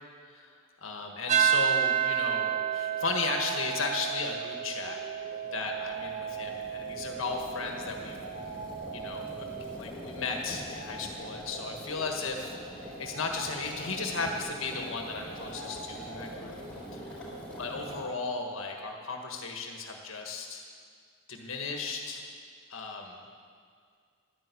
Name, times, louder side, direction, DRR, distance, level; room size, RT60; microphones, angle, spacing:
voice 1, 0.8-5.0 5.5-8.2 8.9-9.3 9.8-16.5 16.9-17.0 17.6-20.6 21.3-22.3 22.7-23.2, left 3 dB, 80° left, 2 dB, 1.6 m, -35 dB
sound 1, 1.2-18.8, equal, 60° right, 2.7 m, -47 dB
sound 2, 1.3-9.8, right 10 dB, 35° right, 0.5 m, -31 dB
sound 3, 5.0-18.0, equal, 5° left, 4.4 m, -45 dB
12.0 x 11.0 x 8.4 m, 2.1 s
head